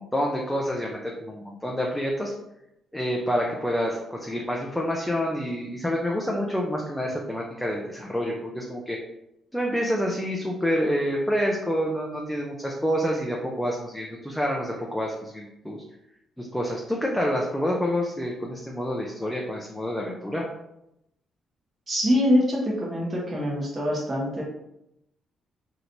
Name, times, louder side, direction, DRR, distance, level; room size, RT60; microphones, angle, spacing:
voice 1, 0.0-2.3 2.9-9.0 9.5-15.8 16.4-20.4, equal, 5° left, -1 dB, 0.5 m, -28 dB
voice 2, 21.9-24.4, equal, 30° right, -4 dB, 0.9 m, -24 dB
3.1 x 2.8 x 2.6 m, 0.84 s
cardioid pair, 90°, 0 cm